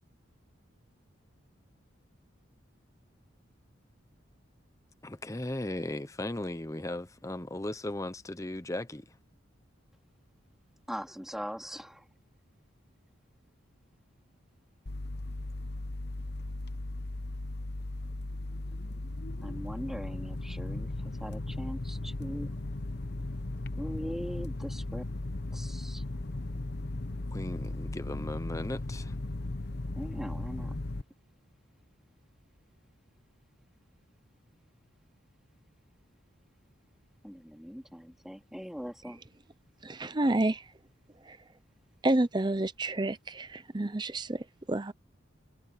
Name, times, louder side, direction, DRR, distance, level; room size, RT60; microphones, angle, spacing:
voice 1, 5.0-9.1 27.3-29.1, left 1 dB, 15° left, 0.7 m, -37 dB
voice 2, 10.9-12.1 19.4-22.5 23.8-25.0 25.5-26.0 29.9-30.7 37.2-39.2, equal, ahead, 3.0 m, -40 dB
sound 1, 14.9-31.0, left 2 dB, 55° left, 0.9 m, -37 dB
voice 3, 39.8-40.6 41.3-41.4 42.0-44.9, right 2 dB, 20° right, 0.7 m, -29 dB
head